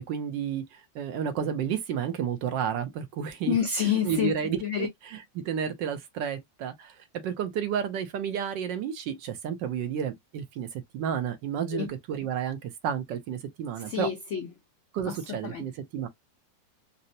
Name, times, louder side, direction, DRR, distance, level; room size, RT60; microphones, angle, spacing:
voice 1, 0.0-3.6 3.8-14.1 14.9-16.1, right 8 dB, 75° right, 1.3 m, -31 dB
voice 2, 3.5-4.9 11.7-11.9 13.9-14.5 15.1-15.6, left 8 dB, 75° left, 0.6 m, -28 dB
4.0 x 2.0 x 2.6 m
omnidirectional pair, 2.0 m